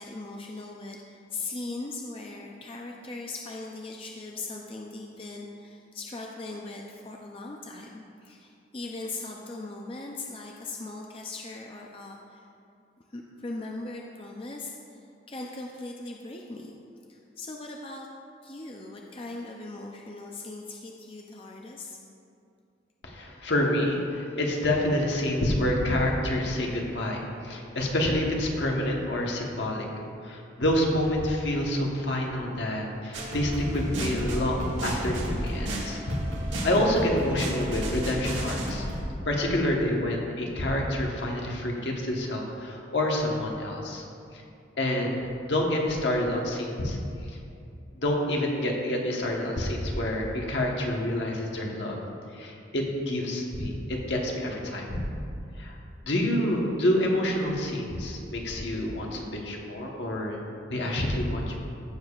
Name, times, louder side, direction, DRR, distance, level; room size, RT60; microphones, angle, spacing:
voice 1, 0.0-12.4 13.1-16.7 17.1-18.1 18.4-22.0, left 2 dB, 30° left, 0 dB, 0.5 m, -39 dB
voice 2, 23.0-29.9 30.2-36.0 36.6-38.9 39.2-44.0 44.3-44.4 44.8-47.0 47.3-47.4 47.9-52.0 52.3-55.0 55.6-55.8 56.0-60.4 60.7-61.5, left 1 dB, 70° left, 0 dB, 1.2 m, -28 dB
sound 1, 33.1-39.0, right 1 dB, 90° right, 1.9 m, -32 dB
15.0 x 6.9 x 2.4 m, 2.5 s
head